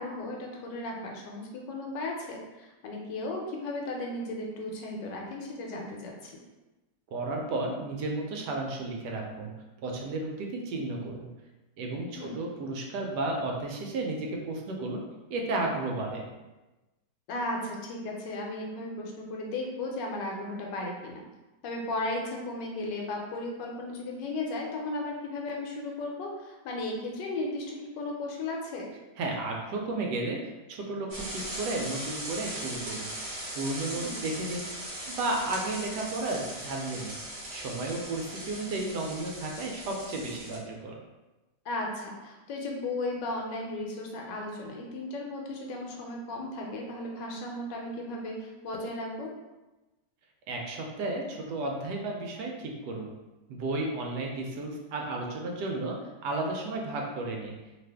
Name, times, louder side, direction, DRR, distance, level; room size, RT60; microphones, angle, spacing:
voice 1, 0.0-6.3 12.1-12.3 17.3-21.2 21.6-28.9 33.9-34.1 41.6-49.3, left 2 dB, 80° left, 0 dB, 1.3 m, -35 dB
voice 2, 7.1-9.5 9.8-11.3 11.8-15.0 15.3-16.3 29.2-30.4 30.7-33.1 33.5-34.7 35.1-37.2 37.5-41.0 50.5-53.1 53.5-57.5, right 2 dB, 75° right, 1 dB, 1.1 m, -33 dB
sound 1, 31.1-40.6, right 1 dB, 45° right, 0.7 m, -39 dB
2.8 x 2.5 x 3.3 m, 1.1 s
omnidirectional pair, 1.9 m